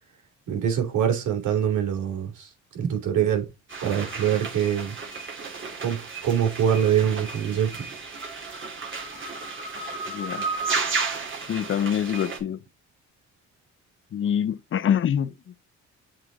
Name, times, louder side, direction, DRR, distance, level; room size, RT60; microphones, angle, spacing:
voice 1, 0.5-3.5 3.8-4.9 5.8-7.9, right 9 dB, 75° right, 3.2 m, -24 dB
sound 1, 3.7-12.4, right 4 dB, 40° right, 2.9 m, -33 dB
voice 2, 10.1-10.4 11.5-12.6 14.1-15.3, left 9 dB, 45° left, 0.6 m, -25 dB
7.7 x 4.3 x 3.9 m
cardioid pair, 90°, 30 cm